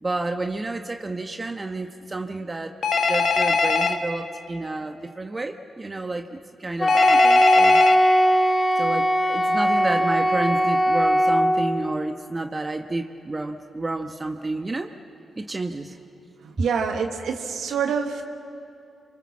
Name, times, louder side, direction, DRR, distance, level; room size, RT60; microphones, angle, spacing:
voice 1, 0.0-2.8 3.1-7.8 8.8-14.9 15.3-15.9 16.6-16.7, right 2 dB, 35° right, 5 dB, 1.3 m, -30 dB
Telephone, 2.8-4.0 6.9-7.9, left 4 dB, 65° left, 1.6 m, -21 dB
Wind instrument woodwind instrument, 6.8-11.7, equal, 30° left, 2.4 m, -19 dB
voice 2, 16.6-18.2, right 6 dB, 80° right, 4 dB, 1.5 m, -26 dB
27.0 x 24.0 x 7.4 m, 2.5 s
supercardioid pair, 45°, 0 cm